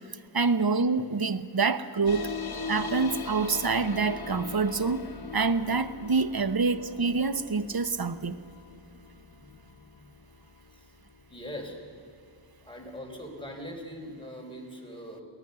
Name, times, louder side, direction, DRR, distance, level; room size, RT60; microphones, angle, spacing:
voice 1, 0.3-2.3 2.7-5.1 5.3-8.4, right 4 dB, 50° right, 12 dB, 1.0 m, -26 dB
sound 1, 2.1-13.0, left 5 dB, 50° left, 1.2 m, -41 dB
voice 2, 11.3-11.8 12.6-15.2, equal, 10° left, 0 dB, 4.5 m, -42 dB
23.5 x 17.5 x 6.8 m, 2.5 s
wide cardioid pair, 60°, 47 cm